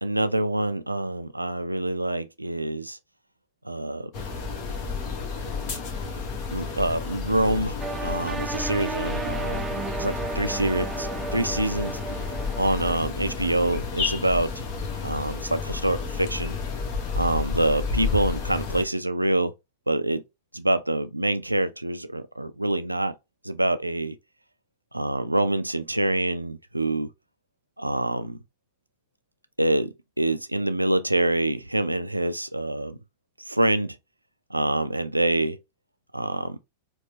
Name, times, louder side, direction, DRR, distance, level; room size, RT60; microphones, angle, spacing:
voice 1, 0.0-3.0 3.6-4.1 6.5-9.7 10.0-12.0 12.6-14.5 15.0-16.6 17.2-19.5 19.9-20.2 20.5-23.1 23.4-24.2 24.9-27.1 27.8-28.4 29.6-33.0 33.4-34.0 34.5-35.6 36.1-36.6, right 1 dB, 85° right, 0.3 m, -26 dB
sound 1, 4.1-18.9, left 5 dB, 40° left, 1.0 m, -31 dB
sound 2, 7.8-12.9, right 4 dB, 15° right, 0.4 m, -34 dB
4.5 x 2.0 x 2.8 m
figure-of-eight pair, 90°, 0 cm